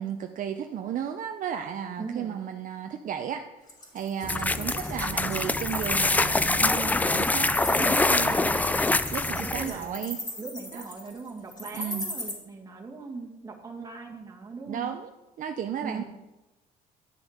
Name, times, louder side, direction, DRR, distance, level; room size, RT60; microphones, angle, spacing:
voice 1, 0.0-3.7 3.9-6.7 7.0-10.2 10.7-10.8 11.7-12.1 13.8-13.9 14.7-15.1 15.4-16.0, right 9 dB, 50° right, 6 dB, 0.6 m, -34 dB
voice 2, 2.0-2.4 6.6-7.2 8.2-9.0 9.4-14.9 15.8-16.0, right 4 dB, 20° right, 0 dB, 1.9 m, -40 dB
Wild animals, 3.7-12.3, left 1 dB, 25° left, 3.4 m, -37 dB
sound 1, 4.2-9.8, left 2 dB, 10° left, 0.3 m, -25 dB
11.0 x 6.2 x 5.0 m, 1.0 s
cardioid pair, 110°, 17 cm